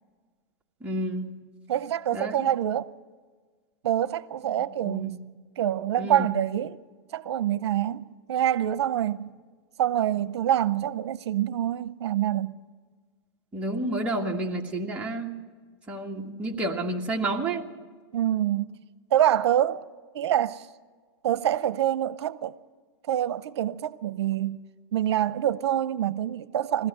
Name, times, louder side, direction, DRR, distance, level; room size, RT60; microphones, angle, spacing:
voice 1, 0.8-1.3 2.1-2.3 4.8-5.2 6.0-6.3 13.5-15.4 15.9-17.7, right 2 dB, 10° right, 1.9 m, -30 dB
voice 2, 1.7-2.9 3.8-5.2 5.6-6.8 7.1-9.3 9.8-12.6 18.1-18.7 19.1-19.9 20.1-20.7 21.2-22.5 23.1-24.6 24.9-26.9, right 11 dB, 80° right, 0.7 m, -26 dB
21.0 x 16.5 x 7.8 m
supercardioid pair, 145°, 14 cm